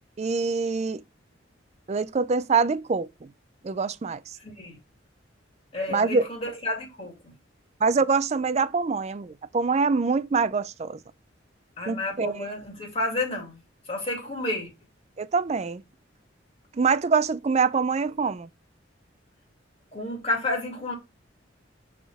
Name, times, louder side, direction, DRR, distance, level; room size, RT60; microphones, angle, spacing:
voice 1, 0.2-1.0 1.9-3.3 3.6-4.4 5.9-6.3 7.8-11.0 11.9-12.5 15.2-15.8 16.7-18.5, right 4 dB, 35° right, 0.4 m, -25 dB
voice 2, 4.4-4.8 5.7-7.3 11.8-13.6 13.9-14.7 19.9-20.9, left 2 dB, 30° left, 2.3 m, -31 dB
8.4 x 3.6 x 3.4 m
head